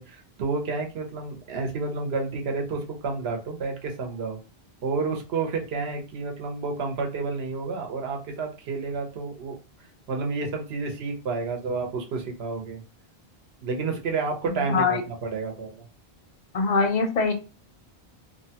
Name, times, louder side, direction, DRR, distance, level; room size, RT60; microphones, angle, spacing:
voice 1, 0.0-4.4 4.8-9.6 10.1-12.8 13.6-15.9, right 4 dB, 80° right, 2 dB, 0.9 m, -30 dB
voice 2, 14.7-15.0 16.5-17.3, left 4 dB, 55° left, 6 dB, 0.6 m, -22 dB
2.7 x 2.1 x 2.7 m, 0.31 s
omnidirectional pair, 1.1 m